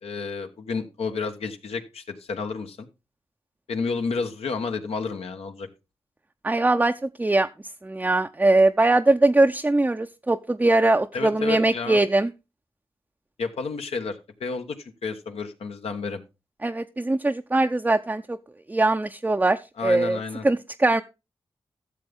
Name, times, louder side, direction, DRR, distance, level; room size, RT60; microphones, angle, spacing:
voice 1, 0.0-2.9 3.7-5.7 11.1-12.0 13.4-16.2 19.8-20.4, left 4 dB, 80° left, 6 dB, 1.1 m, -31 dB
voice 2, 6.4-7.5 7.8-12.3 16.6-18.4 18.7-21.0, right 2 dB, 15° right, 6 dB, 0.5 m, -21 dB
13.0 x 6.9 x 3.5 m, 0.26 s
cardioid pair, 50°, 10 cm